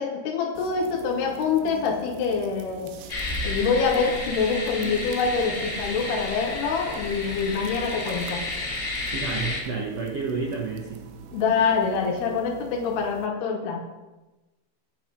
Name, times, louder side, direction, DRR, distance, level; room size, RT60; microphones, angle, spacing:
voice 1, 0.0-2.9 3.4-8.4 11.3-13.8, left 5 dB, 80° left, 0 dB, 3.0 m, -25 dB
sound 1, 0.6-13.3, right 7 dB, 85° right, 2.9 m, -45 dB
sound 2, 3.1-9.6, left 2 dB, 25° left, 2.3 m, -31 dB
voice 2, 9.1-11.0, right 4 dB, 70° right, -1 dB, 1.5 m, -30 dB
9.7 x 8.7 x 5.3 m, 1.1 s
omnidirectional pair, 4.7 m